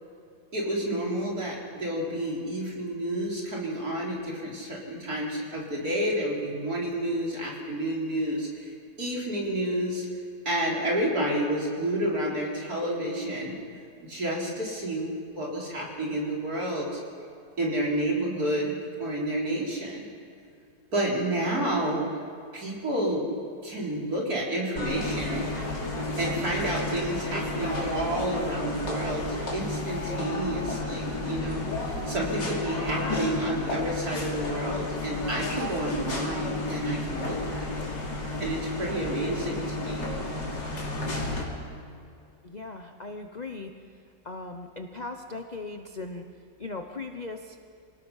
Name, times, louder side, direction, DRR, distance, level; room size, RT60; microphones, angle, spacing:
voice 1, 0.5-10.1 10.5-13.6 14.0-17.0 17.6-20.1 20.9-22.1 22.5-23.3 23.6-25.5 26.2-37.8 38.4-40.1, right 1 dB, 55° right, -3 dB, 4.4 m, -30 dB
sound 1, 24.8-41.4, left 2 dB, 70° left, 3.5 m, -32 dB
voice 2, 42.4-43.7 44.2-46.3 46.6-47.6, left 3 dB, 35° left, 5 dB, 0.7 m, -38 dB
26.5 x 18.5 x 5.7 m, 2.5 s
omnidirectional pair, 2.0 m